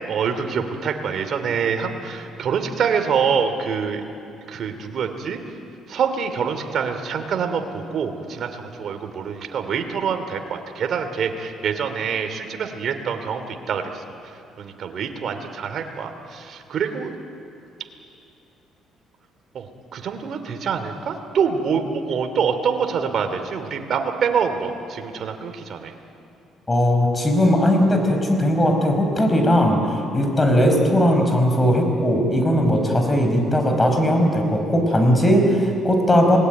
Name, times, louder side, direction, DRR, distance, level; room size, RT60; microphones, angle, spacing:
voice 1, 0.1-4.0 4.5-5.4 5.9-14.3 14.6-17.1 19.5-25.9, right 6 dB, 55° right, 6 dB, 2.7 m, -25 dB
voice 2, 26.7-36.4, equal, 20° left, 4 dB, 5.3 m, -18 dB
27.5 x 19.5 x 9.3 m, 2.6 s
cardioid pair, 100°, 0 cm